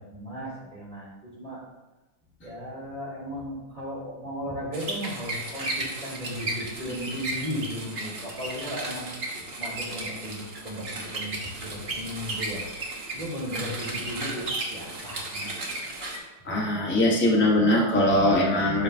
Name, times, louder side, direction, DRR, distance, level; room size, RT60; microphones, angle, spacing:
voice 1, 0.0-1.6 2.4-9.3 9.6-12.6 13.1-15.6, equal, 20° right, -8 dB, 2.9 m, -36 dB
sound 1, 4.7-16.2, right 2 dB, 40° right, 0.9 m, -34 dB
voice 2, 16.4-18.8, left 1 dB, 10° left, -2 dB, 0.5 m, -21 dB
12.0 x 4.9 x 2.7 m, 1.1 s
omnidirectional pair, 2.4 m